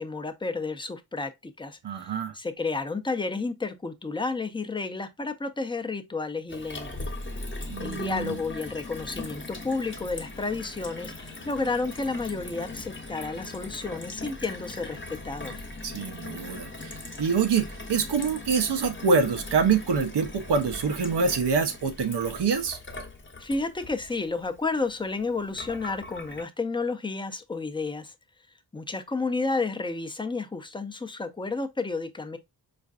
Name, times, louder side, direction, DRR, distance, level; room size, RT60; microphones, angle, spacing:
voice 1, 0.0-6.9 7.8-15.5 23.4-28.1 28.7-32.4, left 3 dB, 10° left, 0.5 m, -31 dB
voice 2, 1.8-2.3 7.7-8.4 15.8-22.8, right 5 dB, 90° right, 0.7 m, -26 dB
Gurgling / Water tap faucet / Sink (filling or washing), 6.5-26.4, left 2 dB, 30° left, 0.9 m, -40 dB
4.3 x 2.5 x 2.4 m
cardioid pair, 55°, 40 cm